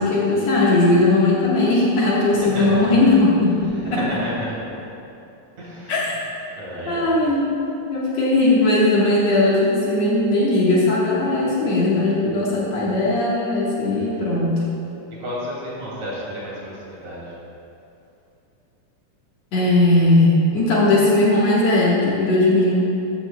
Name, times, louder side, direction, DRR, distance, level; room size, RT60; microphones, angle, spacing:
voice 1, 0.0-4.0 5.9-6.1 6.9-7.5 7.9-14.6 19.5-22.9, left 2 dB, 60° left, -6 dB, 2.4 m, -18 dB
voice 2, 2.2-3.0 3.6-4.7 5.6-6.2 6.6-7.2 13.9-14.3 15.2-17.4, equal, 55° right, -6 dB, 3.5 m, -32 dB
13.0 x 12.5 x 2.2 m, 2.7 s
omnidirectional pair, 3.9 m